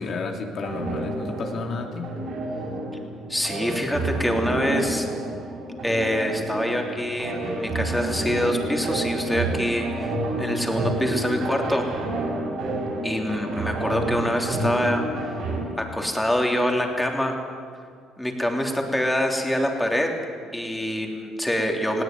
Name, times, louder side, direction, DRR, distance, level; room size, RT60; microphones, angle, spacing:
voice 1, 0.0-2.1, left 4 dB, 55° left, 2 dB, 2.8 m, -31 dB
sound 1, 0.6-15.6, right 2 dB, 60° right, 7.3 m, -29 dB
voice 2, 3.3-5.1 5.8-11.9 13.0-15.0 15.8-17.4 18.2-20.1 20.5-22.0, equal, 5° left, 2 dB, 3.2 m, -25 dB
20.0 x 16.5 x 9.3 m, 2.1 s
cardioid pair, 100°, 0 cm